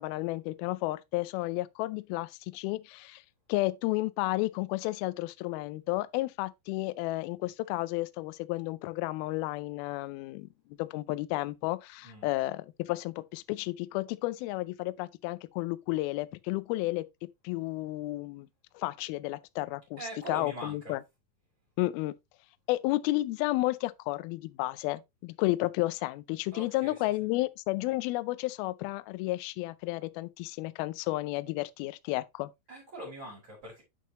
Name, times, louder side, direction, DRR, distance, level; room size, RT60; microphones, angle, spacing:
voice 1, 0.0-3.2 3.5-10.5 10.8-17.1 17.4-18.5 18.7-20.0 20.3-21.0 21.8-22.2 22.7-32.5, left 19 dB, 90° left, 2.1 m, -32 dB
voice 2, 20.0-20.9 26.5-26.9 32.7-33.8, right 1 dB, 30° right, 4.5 m, -42 dB
8.6 x 6.1 x 2.9 m
omnidirectional pair, 4.9 m